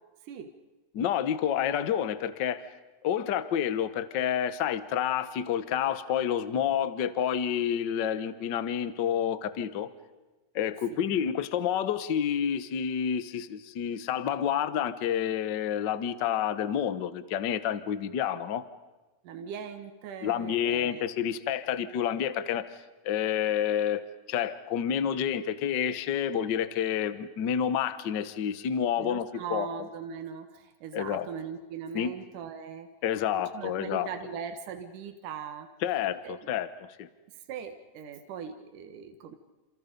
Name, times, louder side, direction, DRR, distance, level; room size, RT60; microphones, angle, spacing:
voice 1, 0.9-2.7 3.0-9.9 10.5-18.6 20.2-24.0 24.3-29.7 30.9-31.3 31.9-32.1 33.0-34.1 35.8-36.7 37.0-37.1, left 9 dB, 65° left, 12 dB, 1.0 m, -29 dB
voice 2, 10.9-11.2 19.2-21.1 29.0-32.9 33.3-35.7 36.2-36.4 37.3-39.4, right 7 dB, 80° right, 6 dB, 2.9 m, -40 dB
29.5 x 28.0 x 5.3 m, 1.2 s
omnidirectional pair, 3.7 m